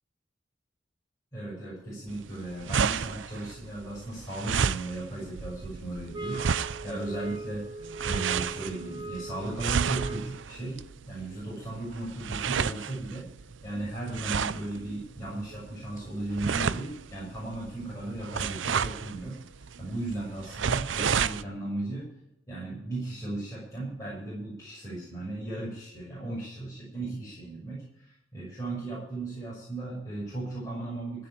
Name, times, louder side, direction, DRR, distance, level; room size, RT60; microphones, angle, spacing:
voice 1, 1.3-7.6 8.0-13.3 13.6-22.1 22.5-31.3, right 2 dB, 20° left, -8 dB, 6.5 m, -36 dB
sound 1, 2.1-21.4, right 6 dB, 80° right, 0.5 m, -32 dB
sound 2, 6.1-10.5, right 3 dB, 25° right, 0.9 m, -40 dB
16.0 x 6.9 x 8.7 m, 0.82 s
head